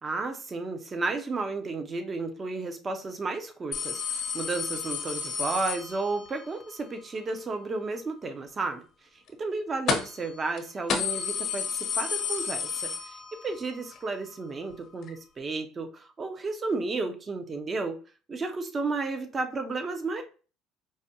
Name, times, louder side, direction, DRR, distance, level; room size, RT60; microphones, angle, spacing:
voice 1, 0.0-8.8 9.4-13.2 13.4-18.0 18.3-20.2, right 3 dB, 30° right, 6 dB, 0.7 m, -32 dB
sound 1, 3.7-6.4 9.9-10.3 10.6-10.7 10.9-13.6 14.0-14.1 15.1-15.2, left 6 dB, 55° left, 0.8 m, -31 dB
4.7 x 2.2 x 2.8 m, 0.36 s
supercardioid pair, 90°, 0 cm